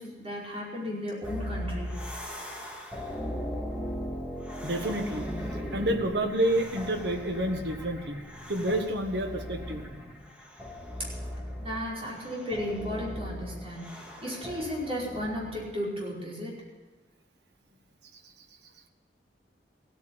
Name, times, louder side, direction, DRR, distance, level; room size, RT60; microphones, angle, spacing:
voice 1, 0.0-1.9 11.6-16.5, equal, 35° right, -5 dB, 5.0 m, -34 dB
sound 1, 1.2-15.7, equal, 5° right, 2.0 m, -38 dB
voice 2, 4.6-5.3 5.7-8.2 8.5-9.8, right 1 dB, 70° right, 6 dB, 1.5 m, -29 dB
16.0 x 9.5 x 8.5 m, 1.2 s
head